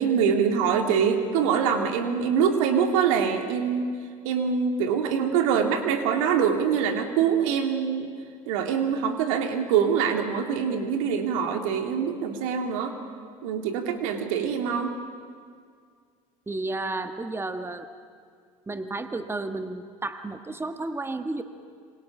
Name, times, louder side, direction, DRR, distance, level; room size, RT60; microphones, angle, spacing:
voice 1, 0.0-3.9 4.2-8.1 8.5-12.9 13.4-14.9, right 7 dB, 75° right, 5 dB, 2.5 m, -24 dB
voice 2, 16.5-17.9 18.7-21.4, right 2 dB, 15° right, 8 dB, 1.5 m, -32 dB
27.0 x 25.0 x 6.0 m, 2.1 s
hypercardioid pair, 80°, 17 cm